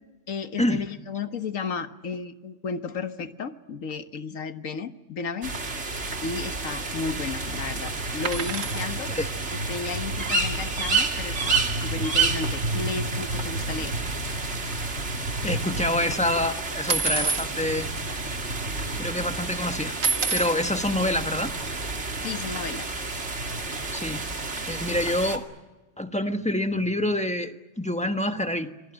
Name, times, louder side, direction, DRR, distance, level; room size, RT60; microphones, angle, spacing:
voice 1, 0.3-5.5 6.2-9.1 9.5-14.0 22.2-22.9, left 4 dB, 90° left, 9 dB, 1.8 m, -33 dB
sound 1, 5.4-25.4, right 3 dB, 60° right, 2.7 m, -29 dB
sound 2, 8.2-8.9 11.1-11.2 11.4-11.6 11.8-12.0 12.8-12.9 13.3-13.8 14.0-15.5 16.9-17.5 18.3-18.4 18.6-19.1 20.0-20.6 21.8-21.9, right 5 dB, 80° right, 1.8 m, -29 dB
voice 2, 15.4-17.9 19.0-19.9 20.3-21.5 23.9-24.3 24.7-25.5 26.0-28.7, left 1 dB, 5° left, 7 dB, 1.3 m, -27 dB
27.0 x 20.5 x 9.1 m, 1.1 s
omnidirectional pair, 1.3 m